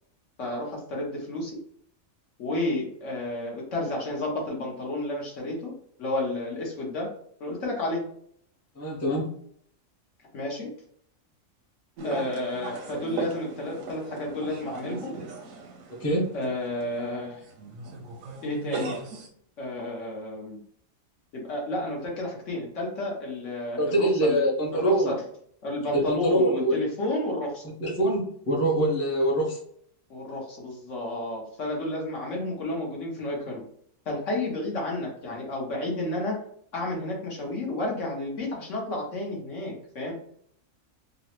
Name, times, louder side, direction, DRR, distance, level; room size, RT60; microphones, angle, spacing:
voice 1, 0.4-1.6 2.4-5.7 6.0-7.1 7.4-8.1 10.3-10.7 12.0-15.1 16.3-17.4 18.4-19.0 19.6-20.6 21.3-24.4 24.7-25.2 25.6-27.7 30.1-33.6 34.1-36.4 36.7-40.2, left 1 dB, 65° left, -2 dB, 1.2 m, -31 dB
voice 2, 8.8-9.3 16.0-16.2 23.8-25.2 25.9-26.8 27.8-29.6, right 1 dB, 20° left, -2 dB, 0.4 m, -24 dB
sound 1, 12.0-19.3, right 3 dB, 85° right, 1.1 m, -38 dB
3.8 x 2.0 x 2.9 m, 0.64 s
omnidirectional pair, 1.4 m